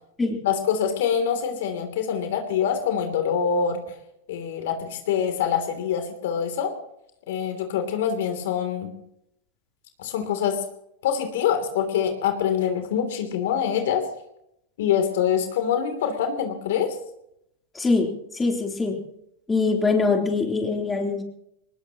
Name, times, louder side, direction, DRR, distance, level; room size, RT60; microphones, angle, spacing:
voice 1, 0.4-3.8 4.3-6.7 7.3-8.9 10.0-10.6 11.0-14.1 14.8-16.9, left 8 dB, 70° left, 6 dB, 3.0 m, -25 dB
voice 2, 17.7-18.1 18.3-19.0 19.5-21.2, left 3 dB, 15° left, 1 dB, 3.4 m, -23 dB
21.0 x 19.5 x 3.0 m, 0.77 s
hypercardioid pair, 115°, 0 cm